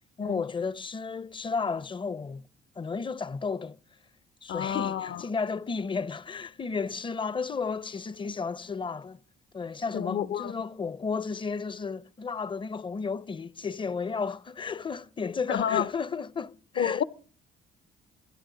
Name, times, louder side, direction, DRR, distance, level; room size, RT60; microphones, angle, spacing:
voice 1, 0.2-2.5 2.8-3.8 4.4-9.2 9.5-17.0, left 5 dB, 25° left, 0.6 m, -33 dB
voice 2, 4.5-5.2 9.9-10.5 15.5-15.9 16.8-17.0, left 9 dB, 60° left, 0.7 m, -29 dB
24.5 x 10.0 x 3.9 m
cardioid pair, 90°, 20 cm